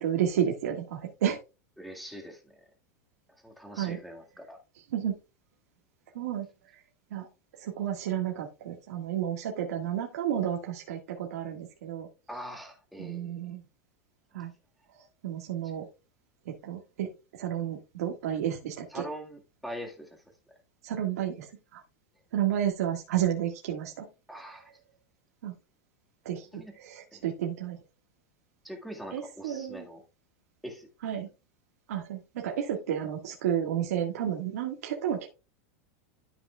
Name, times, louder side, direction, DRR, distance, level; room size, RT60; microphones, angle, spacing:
voice 1, 0.0-1.4 3.7-4.0 4.9-5.1 6.2-6.5 6.7-6.8 7.1-7.3 7.6-12.1 13.0-13.6 14.3-14.5 15.2-15.9 16.5-17.1 17.4-19.0 20.8-21.8 22.3-24.1 25.4-25.5 26.3-27.8 29.1-29.9 31.0-31.3 31.9-35.3, right 10 dB, 85° right, 0 dB, 1.7 m, -31 dB
voice 2, 1.8-2.4 3.4-4.6 12.3-13.5 18.9-20.2 24.3-24.7 26.5-26.7 27.1-27.2 28.6-30.0 30.6-30.9, equal, ahead, 1 dB, 1.8 m, -42 dB
13.0 x 5.7 x 2.3 m, 0.29 s
supercardioid pair, 155°, 8 cm